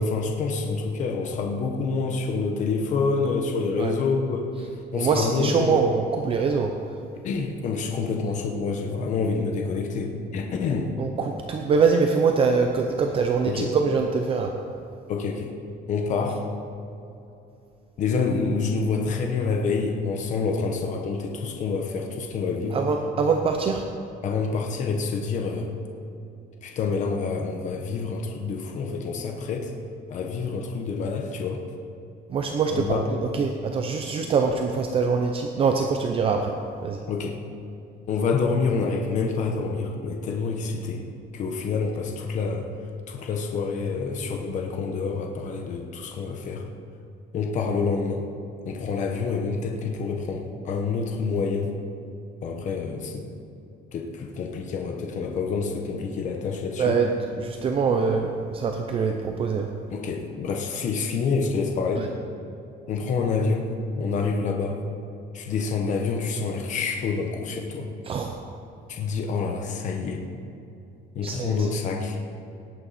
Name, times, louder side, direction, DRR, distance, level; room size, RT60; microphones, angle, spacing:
voice 1, 0.0-4.6 4.9-5.8 7.2-10.9 13.5-13.7 15.1-15.5 15.9-16.5 18.0-22.8 24.2-25.7 26.6-29.7 30.1-31.6 32.7-33.0 37.1-37.4 38.1-41.1 41.3-42.7 43.1-46.7 47.3-48.3 48.6-51.8 52.4-53.3 53.9-57.0 59.9-62.1 62.9-63.7 63.9-64.8 65.3-67.9 68.9-70.3 71.1-72.2, left 4 dB, 45° left, 2 dB, 1.1 m, -27 dB
voice 2, 4.9-6.7 11.0-14.5 22.7-23.8 32.3-36.5 36.8-37.0 56.8-57.1 57.4-59.7 62.0-62.1 68.1-68.3 71.2-71.7, right 5 dB, 30° right, 4 dB, 0.6 m, -24 dB
18.0 x 8.8 x 4.2 m, 2.7 s
cardioid pair, 180°, 18 cm